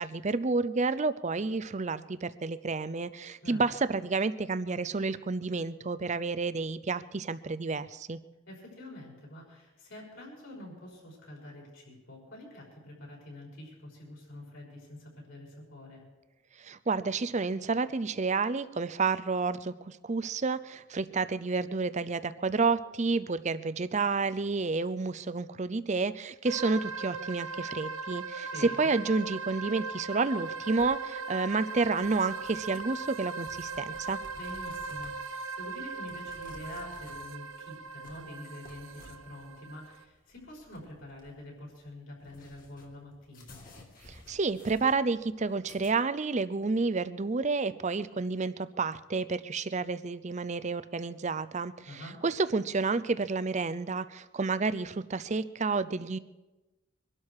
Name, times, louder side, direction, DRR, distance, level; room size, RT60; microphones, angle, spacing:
voice 1, 0.0-8.2 16.6-34.2 44.1-56.2, right 4 dB, 30° right, 14 dB, 0.5 m, -30 dB
voice 2, 8.5-16.1 28.5-28.9 34.3-43.6 51.9-52.2, left 1 dB, 60° left, -2 dB, 5.9 m, -46 dB
sound 1, 26.5-40.0, right 4 dB, 65° right, 1.2 m, -39 dB
sound 2, 30.8-45.9, left 2 dB, 40° left, 2.6 m, -55 dB
23.5 x 12.0 x 4.8 m, 1.1 s
head